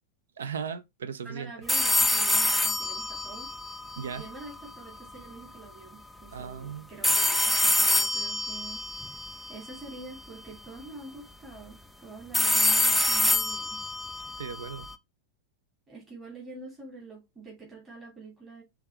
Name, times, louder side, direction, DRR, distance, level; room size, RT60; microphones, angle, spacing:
voice 1, 0.4-1.5 4.0-4.3 6.3-6.9 14.4-14.9, right 7 dB, 65° right, 0.6 m, -37 dB
voice 2, 1.2-3.5 4.1-9.2 9.5-11.8 12.0-13.8 15.9-18.6, right 3 dB, 20° right, 2.8 m, -46 dB
sound 1, 1.7-4.7 7.0-10.2 12.3-14.9, left 2 dB, ahead, 0.5 m, -26 dB
5.7 x 3.5 x 4.6 m
figure-of-eight pair, 90°, 0 cm